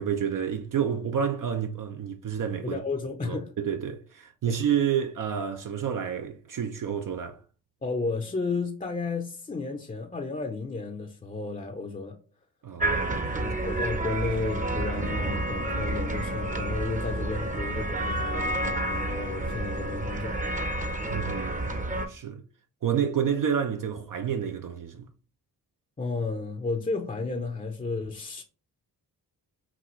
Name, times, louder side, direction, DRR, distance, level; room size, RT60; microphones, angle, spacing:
voice 1, 0.0-2.8 3.2-7.4 12.6-13.4 21.1-21.7 22.1-22.4 22.8-25.1, right 8 dB, 55° right, 0.6 m, -29 dB
voice 2, 2.6-3.5 4.5-4.6 7.8-12.2 13.4-20.4 26.0-28.4, left 3 dB, 20° left, 0.6 m, -33 dB
sound 1, 12.8-22.1, right 1 dB, 20° right, 0.7 m, -30 dB
5.9 x 2.3 x 3.0 m
cardioid pair, 65°, 39 cm